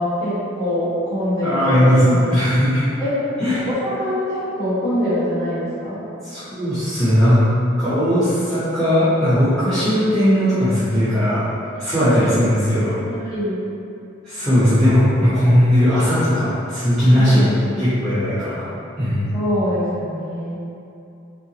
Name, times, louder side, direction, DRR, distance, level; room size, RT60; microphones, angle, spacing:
voice 1, 0.0-2.2 3.0-3.1 3.5-6.0 13.1-13.6 17.1-17.7 19.3-20.6, equal, 20° left, -13 dB, 1.5 m, -24 dB
voice 2, 1.4-2.8 3.4-3.7 6.2-7.5 7.8-11.4 11.8-13.0 14.2-17.5 17.8-18.7 19.0-19.4, equal, 5° left, -17 dB, 0.9 m, -17 dB
3.9 x 3.4 x 2.9 m, 2.7 s
head